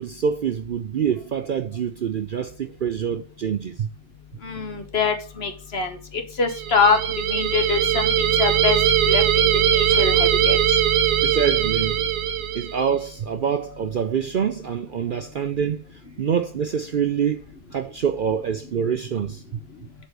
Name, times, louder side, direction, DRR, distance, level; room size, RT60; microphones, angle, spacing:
voice 1, 0.0-3.9 11.2-12.0 12.5-15.8 16.2-17.4 17.7-19.4, right 7 dB, 55° right, 0.6 m, -25 dB
voice 2, 4.4-7.0 7.3-8.1 8.4-8.8 9.0-10.6, left 5 dB, 50° left, 1.5 m, -24 dB
sound 1, 6.5-12.9, right 9 dB, 75° right, 1.1 m, -20 dB
7.8 x 4.3 x 6.6 m
omnidirectional pair, 1.3 m